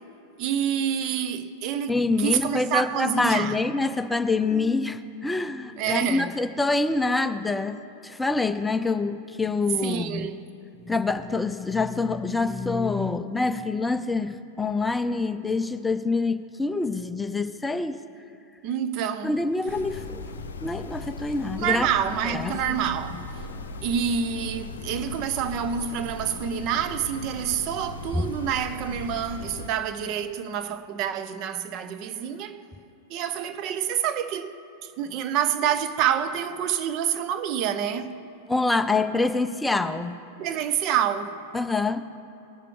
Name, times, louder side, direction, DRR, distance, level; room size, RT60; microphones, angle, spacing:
voice 1, 0.4-3.6 5.7-6.4 9.8-10.5 18.6-19.4 21.6-23.3 23.8-32.7 33.1-38.2 40.4-41.5, right 8 dB, 40° right, 0.7 m, -27 dB
voice 2, 1.9-7.8 8.0-10.3 10.8-18.0 19.2-20.2 20.6-21.9 22.3-22.6 28.2-28.3 38.5-40.1 41.5-42.0, left 3 dB, 5° left, 0.4 m, -26 dB
sound 1, 19.7-29.7, left 3 dB, 70° left, 0.6 m, -38 dB
19.5 x 6.7 x 3.3 m
figure-of-eight pair, 90°, 0 cm